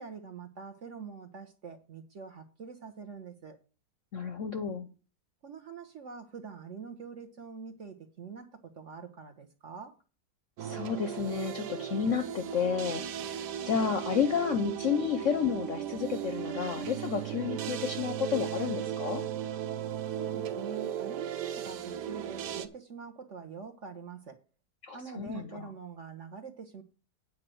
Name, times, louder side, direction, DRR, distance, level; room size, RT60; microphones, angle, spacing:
voice 1, 0.0-3.6 5.4-9.9 20.1-24.4 24.9-26.8, right 6 dB, 50° right, 1.0 m, -45 dB
voice 2, 4.1-4.9 10.6-19.2 24.8-25.7, left 7 dB, 60° left, 0.8 m, -31 dB
sound 1, 10.6-22.7, right 10 dB, 65° right, 1.3 m, -36 dB
9.0 x 4.7 x 7.6 m
omnidirectional pair, 2.0 m